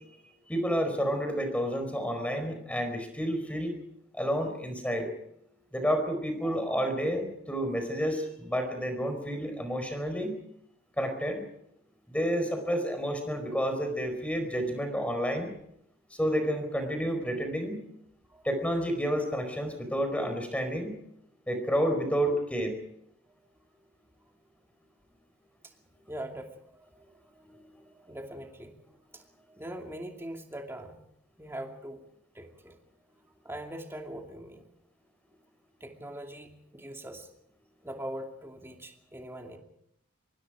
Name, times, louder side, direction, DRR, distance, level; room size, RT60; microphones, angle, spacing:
voice 1, 0.5-3.7 4.2-5.1 5.7-10.4 11.0-11.4 12.1-15.5 16.2-17.8 18.4-21.0 21.5-22.8, equal, 5° left, 7 dB, 4.6 m, -30 dB
voice 2, 6.4-6.7 18.3-18.4 26.1-26.9 27.3-27.4 27.9-28.8 29.1-29.2 29.5-31.0 31.4-32.0 32.3-32.8 33.4-34.7 35.8-37.3 37.8-39.6, right 1 dB, 10° right, 2 dB, 2.7 m, -42 dB
25.5 x 23.0 x 5.0 m, 0.74 s
head